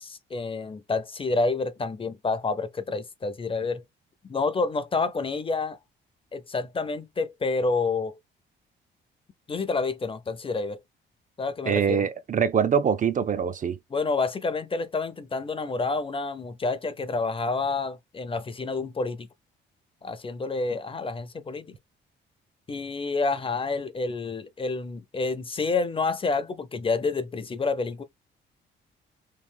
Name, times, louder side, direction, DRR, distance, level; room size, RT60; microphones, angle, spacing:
voice 1, 0.0-3.8 4.2-5.8 6.3-8.2 9.5-10.8 11.4-12.0 13.9-19.3 20.0-21.7 22.7-28.0, left 3 dB, 25° left, 0.6 m, -28 dB
voice 2, 11.6-13.8, right 7 dB, 40° right, 0.5 m, -24 dB
3.2 x 2.4 x 3.4 m
cardioid pair, 90°, 20 cm